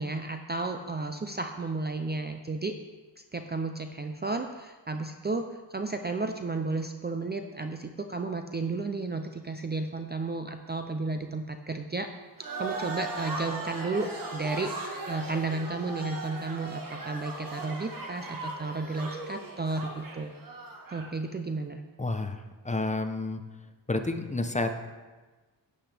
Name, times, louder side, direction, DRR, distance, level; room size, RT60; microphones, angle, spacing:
voice 1, 0.0-2.7 3.3-12.1 12.6-14.7 15.1-20.3 20.9-21.8, right 3 dB, 25° right, 6 dB, 0.5 m, -33 dB
sound 1, 12.4-21.2, right 3 dB, 50° right, 1.5 m, -38 dB
voice 2, 22.0-23.4 23.9-24.9, left 2 dB, 15° left, 7 dB, 0.7 m, -30 dB
11.5 x 9.1 x 3.4 m, 1.3 s
wide cardioid pair, 105°, 44 cm